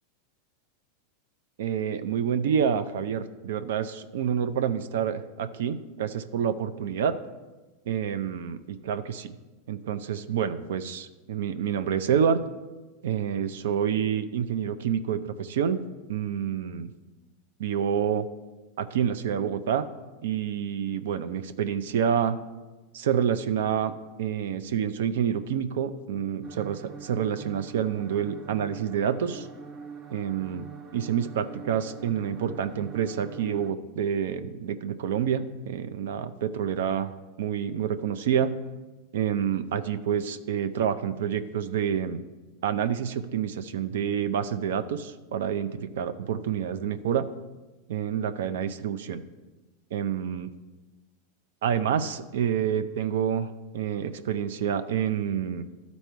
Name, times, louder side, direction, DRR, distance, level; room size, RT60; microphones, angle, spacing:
voice 1, 1.6-7.2 7.9-9.3 9.7-12.4 13.0-15.8 16.1-16.9 17.6-18.3 18.8-19.8 20.2-22.4 22.9-23.9 24.2-29.5 30.1-30.7 30.9-37.1 37.4-38.5 39.1-42.2 42.6-47.3 47.9-49.2 49.9-50.5 51.6-55.6, right 8 dB, 80° right, 11 dB, 0.5 m, -28 dB
sound 1, 26.4-33.7, right 6 dB, 25° right, 0.5 m, -44 dB
12.0 x 4.1 x 4.5 m, 1.2 s
supercardioid pair, 135°, 0 cm